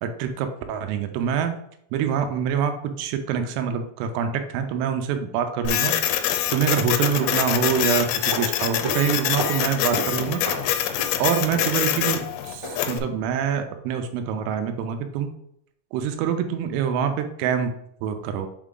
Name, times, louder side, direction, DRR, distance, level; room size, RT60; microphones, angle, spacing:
voice 1, 0.0-1.6 1.9-6.0 6.5-10.4 11.2-15.3 15.9-17.7 18.0-18.5, right 7 dB, 85° right, 7 dB, 3.2 m, -25 dB
Printer, 5.7-13.0, left 11 dB, 85° left, 3.2 m, -25 dB
sound 1, 7.2-13.0 13.3-13.4, right 2 dB, 65° right, 1.2 m, -35 dB
7.3 x 3.5 x 3.7 m, 0.74 s
omnidirectional pair, 5.9 m